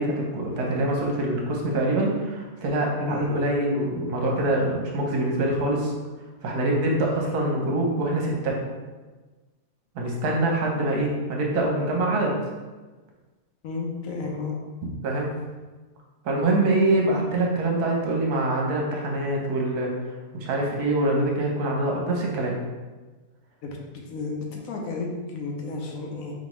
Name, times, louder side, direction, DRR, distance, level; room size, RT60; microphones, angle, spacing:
voice 1, 0.0-5.9 6.4-8.6 9.9-12.4 15.0-15.3 16.2-19.9 20.3-22.6, right 2 dB, 80° right, -1 dB, 1.3 m, -24 dB
voice 2, 13.6-14.6 23.6-26.3, left 3 dB, 70° left, 0 dB, 1.0 m, -32 dB
4.2 x 3.1 x 3.0 m, 1.3 s
omnidirectional pair, 1.7 m